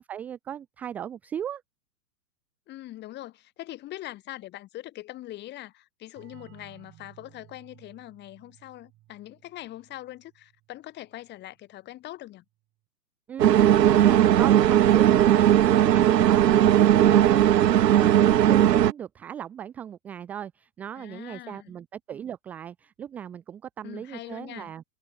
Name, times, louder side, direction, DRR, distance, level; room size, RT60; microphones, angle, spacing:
voice 1, 0.0-1.6 13.3-18.1 18.5-24.8, right 9 dB, 5° right, 0.4 m, -37 dB
voice 2, 2.7-12.4 20.9-21.7 23.8-24.7, left 15 dB, 20° left, 3.1 m, -42 dB
sound 1, 6.2-11.6, right 16 dB, 25° right, 6.5 m, -57 dB
sound 2, 13.4-18.9, right 11 dB, 90° right, 1.1 m, -18 dB
hypercardioid pair, 155°, 48 cm